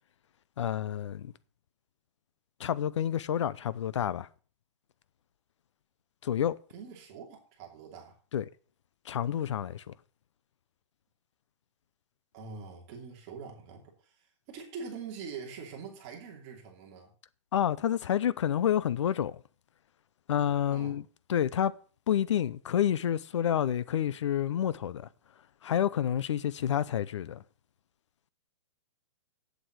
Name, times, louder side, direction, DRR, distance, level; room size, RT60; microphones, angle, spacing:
voice 1, 0.6-1.3 2.6-4.3 6.2-6.6 8.3-8.5 9.1-9.8 17.5-19.3 20.3-21.0 21.3-21.7 22.1-25.1 25.6-27.4, left 10 dB, 80° left, 0.7 m, -29 dB
voice 2, 6.7-8.2 12.3-17.1 20.7-21.0, right 5 dB, 30° right, 2.8 m, -44 dB
8.6 x 8.1 x 7.5 m
hypercardioid pair, 170°, 15 cm